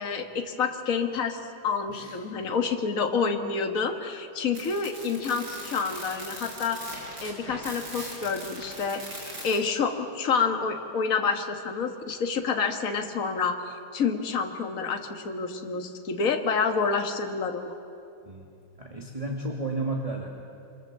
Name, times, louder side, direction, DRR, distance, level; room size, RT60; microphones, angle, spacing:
voice 1, 0.0-6.9 7.2-17.7, left 5 dB, 45° left, 4 dB, 1.9 m, -28 dB
voice 2, 1.9-2.2 18.2-18.5 18.8-20.4, right 2 dB, 20° right, 0 dB, 2.2 m, -33 dB
sound 1, 4.5-9.6, right 1 dB, 55° right, 7.0 m, -40 dB
27.0 x 25.0 x 7.5 m, 2.5 s
omnidirectional pair, 2.2 m